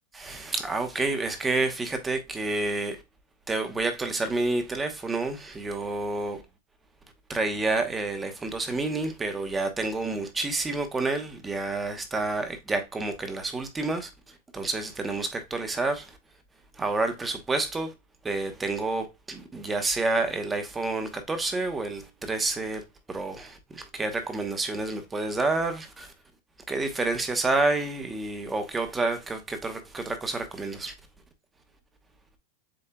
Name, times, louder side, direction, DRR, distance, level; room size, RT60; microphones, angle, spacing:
voice 1, 0.1-3.0 3.5-6.4 7.3-16.2 16.7-17.9 18.2-26.1 26.7-30.9, right 3 dB, 15° right, 1.0 m, -29 dB
7.6 x 2.7 x 2.3 m
supercardioid pair, 130°, 0 cm